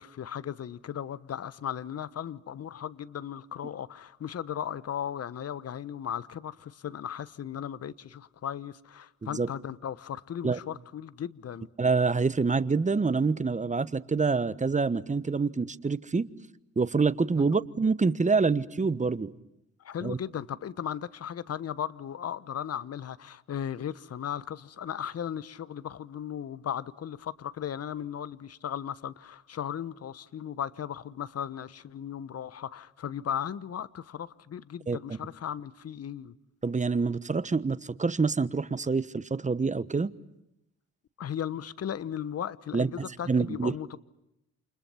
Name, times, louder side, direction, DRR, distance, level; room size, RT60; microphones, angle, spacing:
voice 1, 0.0-11.7 17.4-17.6 19.8-36.3 41.2-44.0, left 9 dB, 45° left, 1.2 m, -36 dB
voice 2, 11.8-16.3 16.8-19.3 20.0-20.2 34.9-35.0 36.6-40.1 42.7-43.7, right 4 dB, 20° right, 1.2 m, -26 dB
29.0 x 29.0 x 5.8 m
hypercardioid pair, 50°, 35 cm